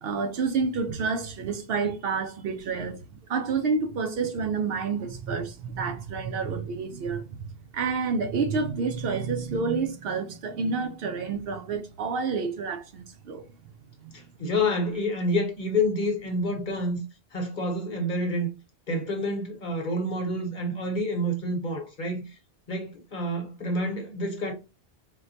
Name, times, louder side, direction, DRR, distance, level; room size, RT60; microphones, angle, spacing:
voice 1, 0.0-7.5 7.7-13.5 14.0-14.2, right 5 dB, 65° right, 0.7 m, -29 dB
voice 2, 14.1-17.0 17.3-18.5 18.9-22.2 22.7-24.5, left 1 dB, 50° left, 0.9 m, -28 dB
4.2 x 2.1 x 2.6 m
omnidirectional pair, 1.1 m